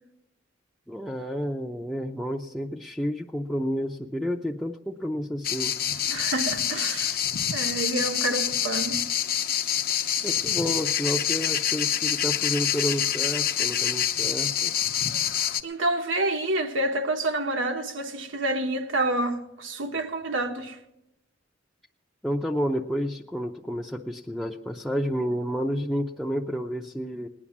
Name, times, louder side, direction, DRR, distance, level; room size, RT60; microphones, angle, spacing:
voice 1, 0.9-5.8 10.2-14.7 22.2-27.3, equal, ahead, 0.6 m, -30 dB
sound 1, 5.4-15.6, left 10 dB, 50° left, 0.8 m, -26 dB
voice 2, 6.1-7.2 7.5-9.0 15.6-20.8, right 2 dB, 85° right, 1.4 m, -28 dB
19.0 x 9.9 x 7.2 m
head